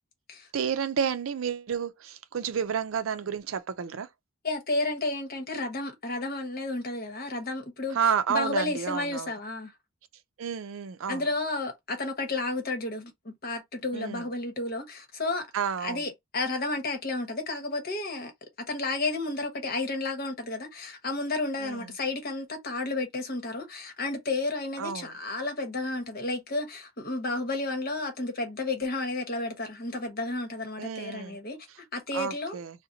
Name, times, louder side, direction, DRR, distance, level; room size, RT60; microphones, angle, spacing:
voice 1, 0.5-4.1 7.9-9.3 10.4-11.2 13.9-14.2 15.5-16.0 21.6-21.9 24.8-25.1 30.8-31.4 32.1-32.7, right 7 dB, 85° right, 0.4 m, -30 dB
voice 2, 4.4-8.0 8.3-9.7 11.1-15.5 15.8-18.3 18.6-31.7 31.9-32.6, left 2 dB, 50° left, 1.1 m, -32 dB
2.8 x 2.1 x 3.8 m
head